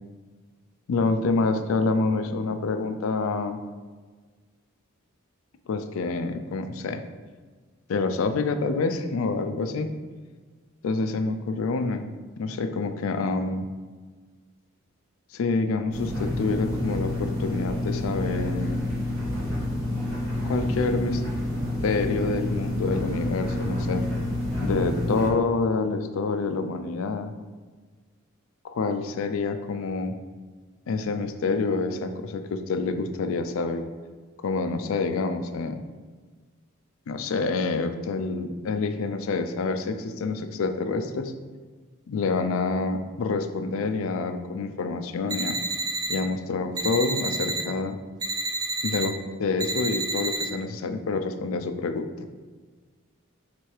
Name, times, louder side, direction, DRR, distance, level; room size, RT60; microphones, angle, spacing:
voice 1, 0.9-3.6 5.7-7.0 7.9-9.9 10.8-12.1 12.4-13.7 15.3-18.8 20.4-21.2 21.8-24.1 24.6-27.3 28.6-30.1 30.9-33.9 34.4-35.8 37.1-41.3 42.1-45.6 46.1-48.0 48.8-52.1, left 3 dB, 70° left, 8 dB, 0.4 m, -27 dB
sound 1, 15.9-25.3, left 1 dB, 70° right, 1.4 m, -29 dB
sound 2, 45.3-46.2 46.8-47.6 48.2-49.1 49.6-50.5, right 2 dB, 20° right, 0.3 m, -29 dB
3.3 x 3.1 x 4.6 m, 1.4 s
head